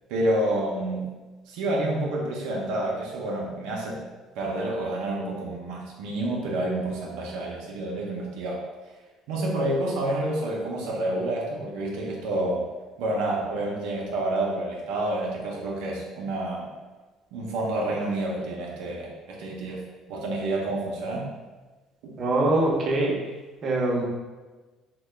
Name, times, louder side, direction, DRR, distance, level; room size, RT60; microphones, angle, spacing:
voice 1, 0.1-1.1 1.5-4.0 4.4-8.6 9.3-12.6 13.0-16.7 17.3-19.8 20.1-21.3 22.0-22.2, right 1 dB, 85° right, -3 dB, 0.5 m, -29 dB
voice 2, 22.2-23.2 23.6-24.0, right 2 dB, 45° right, -2 dB, 0.6 m, -23 dB
2.8 x 2.1 x 3.2 m, 1.3 s
cardioid pair, 110°, 0 cm